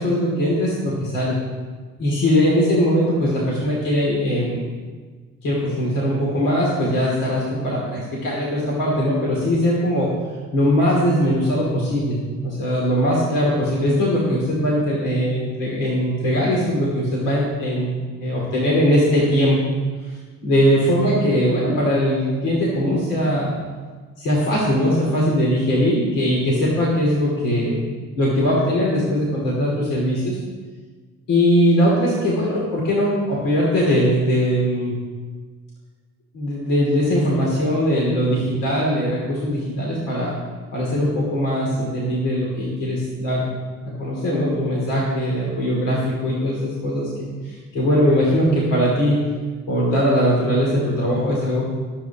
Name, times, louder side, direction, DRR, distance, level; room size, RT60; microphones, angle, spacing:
voice 1, 0.0-1.4 2.0-4.6 5.4-10.1 10.5-12.2 12.4-19.6 20.0-20.2 20.4-23.5 24.2-27.8 28.2-30.4 31.3-34.9 36.3-40.4 40.7-43.5 44.0-49.3 49.7-51.6, equal, 85° left, -4 dB, 2.9 m, -20 dB
20.0 x 8.4 x 3.0 m, 1.4 s
cardioid pair, 80°, 31 cm